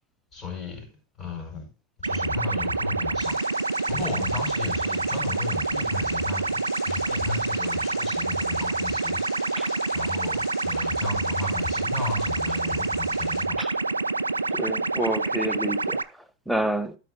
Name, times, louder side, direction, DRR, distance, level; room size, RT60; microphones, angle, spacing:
voice 1, 0.3-0.8 1.2-1.7 2.0-3.4 3.9-6.6 6.8-9.2 9.9-13.6, left 3 dB, 20° left, 5.0 m, -34 dB
sound 1, 2.0-16.0, right 3 dB, 80° right, 0.3 m, -27 dB
sound 2, 3.2-13.5, left 8 dB, 40° left, 1.3 m, -45 dB
voice 2, 14.5-17.0, right 1 dB, ahead, 0.7 m, -29 dB
12.5 x 4.9 x 3.7 m
figure-of-eight pair, 90°, 0 cm